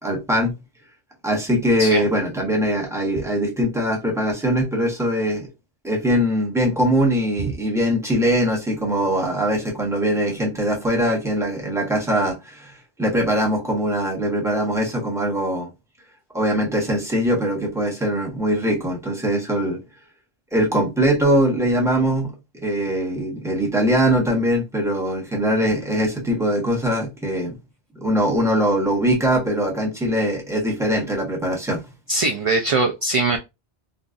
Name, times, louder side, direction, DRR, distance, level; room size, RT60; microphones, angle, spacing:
voice 1, 0.0-0.5 1.2-5.5 5.8-12.7 13.0-15.7 16.3-19.8 20.5-22.3 22.6-27.6 28.0-31.8, equal, 5° right, 0.9 m, -21 dB
voice 2, 32.1-33.4, right 2 dB, 50° right, 0.4 m, -21 dB
3.8 x 2.5 x 2.4 m
omnidirectional pair, 1.0 m